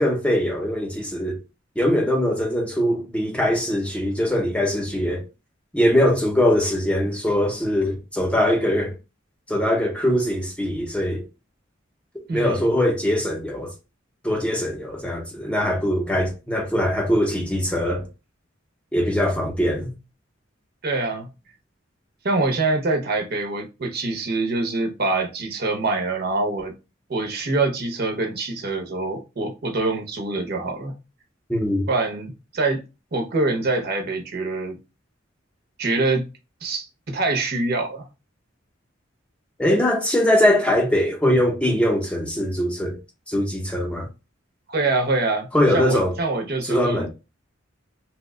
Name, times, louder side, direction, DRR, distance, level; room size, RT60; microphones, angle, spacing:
voice 1, 0.0-1.4 1.8-5.2 5.7-8.9 9.5-11.2 12.3-13.7 14.2-18.1 18.9-19.9 31.5-31.9 39.6-43.0 43.3-44.1 45.5-46.2 46.7-47.1, equal, 5° left, 0.6 m, -22 dB
voice 2, 12.3-12.7 20.8-21.3 22.2-26.7 27.1-30.9 31.9-32.8 33.1-34.7 35.8-36.2 36.6-38.1 44.7-45.5 45.7-47.1, right 3 dB, 50° right, 0.7 m, -25 dB
2.9 x 2.1 x 3.6 m
head